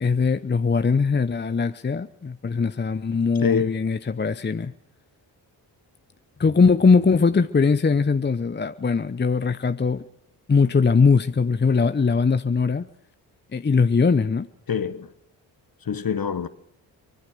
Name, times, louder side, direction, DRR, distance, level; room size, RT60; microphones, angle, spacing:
voice 1, 0.0-4.7 6.4-10.1 10.5-12.9 13.5-14.5, left 5 dB, 20° left, 0.8 m, -21 dB
voice 2, 3.4-3.8 14.7-15.1 15.8-16.5, left 6 dB, 45° left, 1.5 m, -25 dB
24.5 x 20.5 x 6.5 m
supercardioid pair, 45°, 47 cm